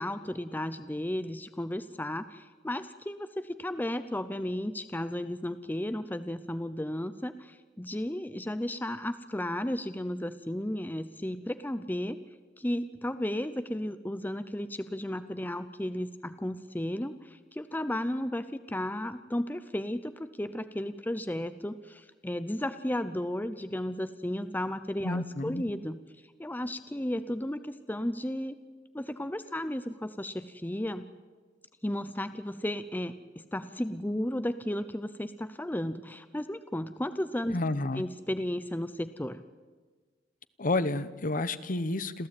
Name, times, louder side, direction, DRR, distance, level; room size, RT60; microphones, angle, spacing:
voice 1, 0.0-12.2 12.6-26.0 26.4-28.6 28.9-31.1 31.8-37.6 37.9-39.4, left 1 dB, 10° left, 11 dB, 0.6 m, -34 dB
voice 2, 25.0-25.6 37.5-38.0 40.6-42.3, left 2 dB, 45° left, 14 dB, 0.9 m, -30 dB
27.0 x 15.0 x 8.9 m, 1.4 s
head